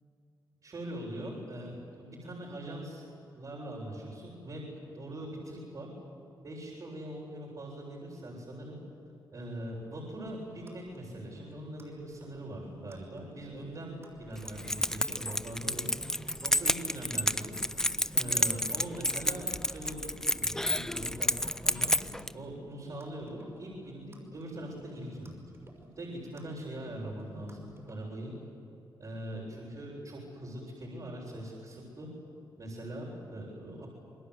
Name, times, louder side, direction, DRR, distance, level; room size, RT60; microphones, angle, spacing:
voice 1, 0.6-3.0 3.3-4.7 4.9-5.9 6.4-8.8 9.3-15.9 16.4-17.7 18.1-21.4 21.6-25.4 26.0-28.3 29.0-32.1 32.6-33.9, right 1 dB, 45° right, -4 dB, 7.3 m, -42 dB
sound 1, 10.1-28.0, right 1 dB, 30° right, 6.2 m, -51 dB
Keys jangling, 14.4-22.3, left 1 dB, 5° left, 0.6 m, -30 dB
28.5 x 21.0 x 8.4 m, 2.9 s
cardioid pair, 85°, 8 cm